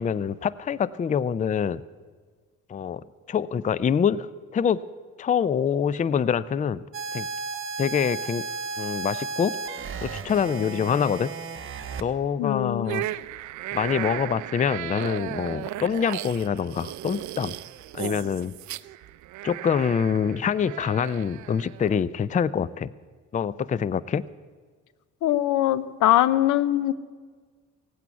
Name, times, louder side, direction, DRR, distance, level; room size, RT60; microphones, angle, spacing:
voice 1, 0.0-1.8 2.7-4.3 4.5-4.8 5.2-6.8 7.1-7.3 7.8-8.5 8.8-9.6 10.0-11.3 12.0-13.1 13.7-17.5 17.9-18.5 19.4-22.9 23.3-24.2, left 7 dB, 25° left, 19 dB, 0.4 m, -25 dB
sound 1, 6.9-12.0, right 4 dB, 45° right, 1.1 m, -34 dB
voice 2, 12.4-13.0 25.2-26.9, left 13 dB, 85° left, 17 dB, 0.7 m, -22 dB
sound 2, 12.8-22.0, right 15 dB, 70° right, 0.5 m, -36 dB
17.0 x 8.3 x 9.1 m, 1.5 s
cardioid pair, 90°, 30 cm